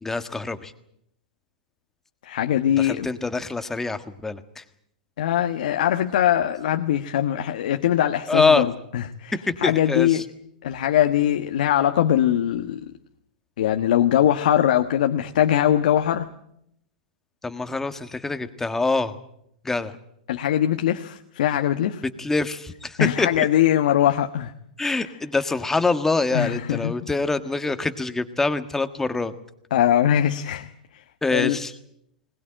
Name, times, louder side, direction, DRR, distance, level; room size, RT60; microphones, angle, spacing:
voice 1, 0.0-0.7 2.8-4.6 8.3-8.6 9.5-10.2 17.4-19.1 19.6-19.9 22.2-23.5 24.8-29.3 31.2-31.7, left 3 dB, 10° left, 10 dB, 1.5 m, -25 dB
voice 2, 2.2-3.1 5.2-9.3 9.6-10.2 10.6-12.8 13.6-16.3 20.3-22.0 23.0-24.5 26.3-26.9 29.7-30.7 31.3-31.6, left 11 dB, 75° left, 6 dB, 1.3 m, -21 dB
21.0 x 19.5 x 8.9 m, 0.75 s
hypercardioid pair, 135°, 5 cm